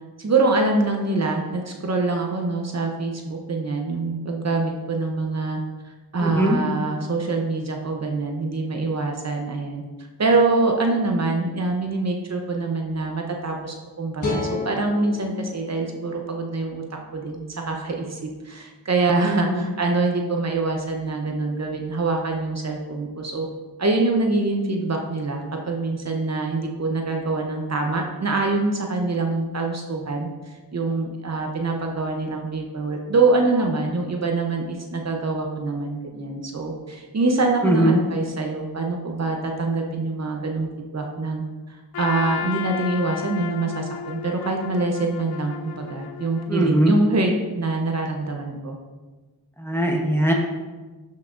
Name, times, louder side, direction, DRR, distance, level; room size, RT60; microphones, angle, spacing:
voice 1, 0.2-5.6 6.1-9.8 10.2-16.8 17.1-23.5 23.8-30.3 30.7-41.4 42.0-48.8, right 3 dB, 45° right, 2 dB, 0.8 m, -24 dB
voice 2, 6.2-6.6 19.2-19.6 37.6-38.0 46.5-46.9 49.6-50.3, right 1 dB, 5° left, 0 dB, 1.0 m, -20 dB
sound 1, 14.2-17.4, left 3 dB, 50° left, 1.6 m, -32 dB
Trumpet, 41.9-47.0, left 9 dB, 70° left, 0.5 m, -33 dB
11.5 x 5.7 x 2.6 m, 1.3 s
wide cardioid pair, 135°, 38 cm